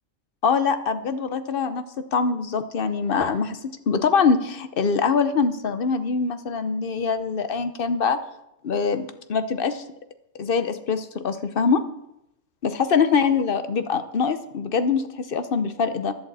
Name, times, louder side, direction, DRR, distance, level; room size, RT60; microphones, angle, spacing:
voice 1, 0.4-8.2 8.6-9.8 10.4-11.8 12.6-16.1, left 5 dB, 50° left, 10 dB, 0.8 m, -23 dB
14.5 x 11.0 x 4.1 m, 0.85 s
omnidirectional pair, 1.5 m